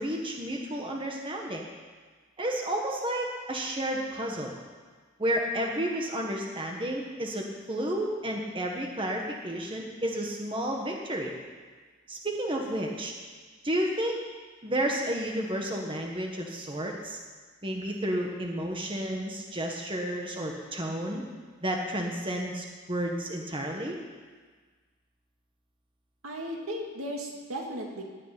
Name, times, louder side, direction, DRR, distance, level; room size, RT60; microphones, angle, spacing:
voice 1, 0.0-1.6 2.4-4.5 5.2-11.3 12.1-13.1 13.6-14.2 14.6-17.2 17.6-21.2 21.6-24.0, right 1 dB, 25° right, 0 dB, 1.4 m, -31 dB
voice 2, 26.2-28.0, equal, 70° right, 0 dB, 2.5 m, -36 dB
17.0 x 6.6 x 10.0 m, 1.5 s
head